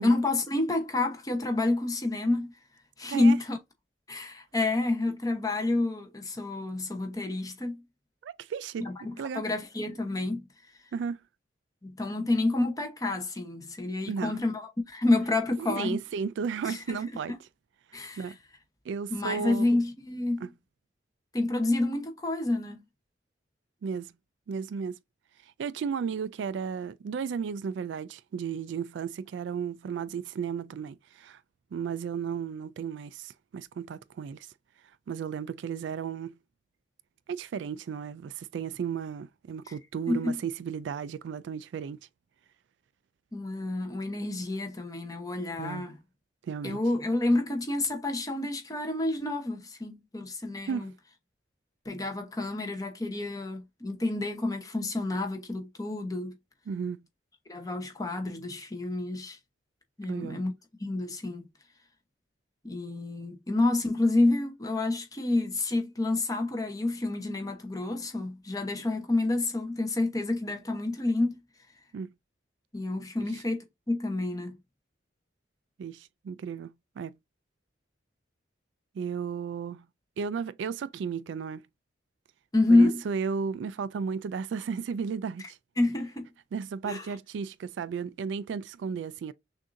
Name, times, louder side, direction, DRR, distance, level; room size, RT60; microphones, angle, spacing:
voice 1, 0.0-2.5 3.0-3.6 4.1-7.8 8.8-10.5 11.8-16.0 16.6-17.0 17.9-18.3 19.1-20.5 21.3-22.8 39.7-39.8 40.1-40.4 43.3-46.0 46.6-50.9 51.8-56.3 57.5-59.4 60.0-60.5 60.8-61.5 62.6-71.4 72.7-74.5 82.5-83.0 85.8-86.3 86.8-87.1, left 2 dB, 20° left, 1.0 m, -28 dB
voice 2, 8.2-8.9 9.2-9.4 10.9-11.2 14.1-14.4 15.6-17.3 18.2-18.4 18.9-19.7 20.4-20.5 23.8-24.1 24.5-25.0 25.6-31.4 31.7-34.5 35.1-36.4 37.3-42.0 45.6-45.9 46.4-46.8 50.7-50.9 56.7-57.0 60.1-60.4 71.9-72.1 75.8-77.1 79.0-79.9 80.2-81.6 82.7-85.6 86.5-89.3, right 6 dB, 75° right, 0.3 m, -34 dB
6.2 x 2.6 x 2.6 m
head